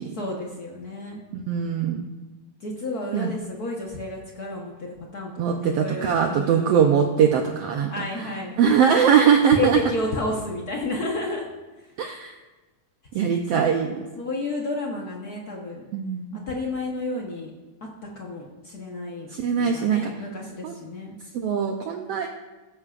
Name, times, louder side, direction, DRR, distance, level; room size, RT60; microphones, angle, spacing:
voice 1, 0.1-1.2 2.6-6.8 7.9-8.5 9.5-11.5 11.8-11.9 13.1-13.2 13.5-13.8 14.2-15.9 16.3-17.5 17.8-19.3 19.6-21.2, left 2 dB, 90° left, -2 dB, 0.8 m, -31 dB
voice 2, 1.3-2.1 3.1-3.3 5.4-7.9 8.2-8.3 8.6-9.8 12.0-12.3 13.1-14.0 15.9-16.4 19.3-20.1 20.6-20.7 21.3-22.3, right 7 dB, 80° right, 4 dB, 1.4 m, -21 dB
16.0 x 13.5 x 2.5 m, 1.2 s
omnidirectional pair, 3.6 m